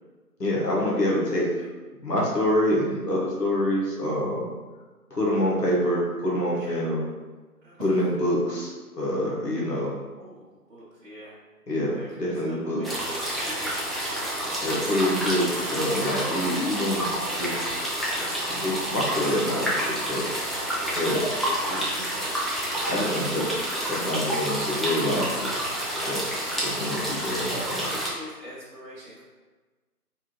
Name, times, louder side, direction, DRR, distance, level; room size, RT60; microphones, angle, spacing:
voice 1, 0.4-1.5 2.0-4.5 5.1-7.0 7.8-9.9 11.7-12.8 14.6-17.1 17.3-17.7 18.5-20.3 20.9-21.3 21.6-21.9 22.9-23.5 23.9-25.7 26.0-26.2 26.6-27.9, left 1 dB, 85° left, -5 dB, 1.3 m, -26 dB
voice 2, 7.6-8.1 10.2-11.4 11.9-14.1 21.7-22.2 27.9-29.2, equal, 50° right, -10 dB, 0.8 m, -44 dB
sound 1, 12.8-28.1, right 1 dB, ahead, 0.4 m, -29 dB
3.5 x 2.4 x 2.9 m, 1.3 s
figure-of-eight pair, 165°, 47 cm